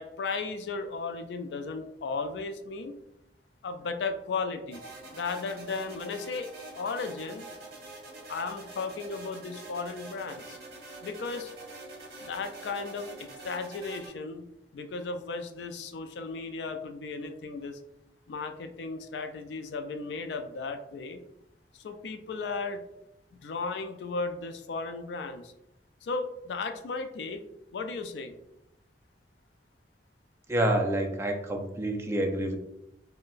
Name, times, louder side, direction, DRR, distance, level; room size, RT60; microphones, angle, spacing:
voice 1, 0.0-3.0 3.6-4.8 5.1-6.5 6.7-7.5 8.3-10.6 11.0-11.5 12.2-14.5 14.7-17.8 18.3-21.2 21.7-22.8 23.3-25.5 26.0-27.4 27.7-28.4, left 4 dB, 70° left, 7 dB, 0.3 m, -35 dB
sound 1, 4.7-14.1, right 2 dB, 60° right, 0.9 m, -45 dB
voice 2, 30.5-32.6, right 1 dB, 15° right, 3 dB, 0.3 m, -28 dB
3.7 x 2.1 x 2.5 m, 0.84 s
head